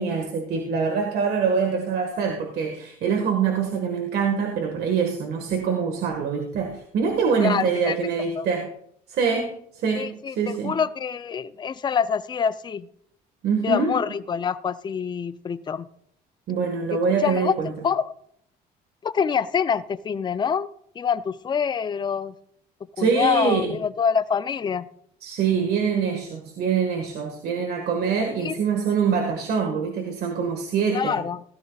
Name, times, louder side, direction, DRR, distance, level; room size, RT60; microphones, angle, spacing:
voice 1, 0.0-8.7 9.1-10.8 13.4-14.0 16.5-17.8 23.0-23.8 25.2-31.2, right 6 dB, 70° right, 3 dB, 1.6 m, -24 dB
voice 2, 7.4-8.0 8.4-8.5 9.9-12.9 13.6-15.9 16.9-17.6 17.8-18.1 19.0-20.7 21.0-22.3 23.0-24.9 28.4-28.5 30.9-31.4, left 6 dB, 25° left, 13 dB, 0.5 m, -26 dB
16.5 x 13.0 x 2.4 m, 0.66 s
cardioid pair, 110°, 17 cm